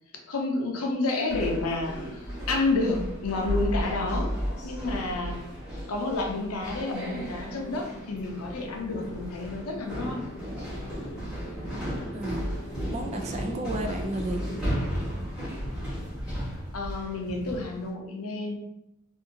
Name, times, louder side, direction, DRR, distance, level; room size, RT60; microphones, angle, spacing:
voice 1, 0.3-2.0 2.5-4.3 4.6-5.4 5.9-10.2 16.7-18.6, left 2 dB, 90° left, 2 dB, 0.6 m, -29 dB
sound 1, 1.3-17.8, equal, 5° right, 1.3 m, -34 dB
sound 2, 7.1-14.8, right 1 dB, 25° left, 0.6 m, -44 dB
voice 2, 12.1-14.4, right 1 dB, 30° right, 4 dB, 0.3 m, -33 dB
2.7 x 2.5 x 2.7 m, 0.86 s
head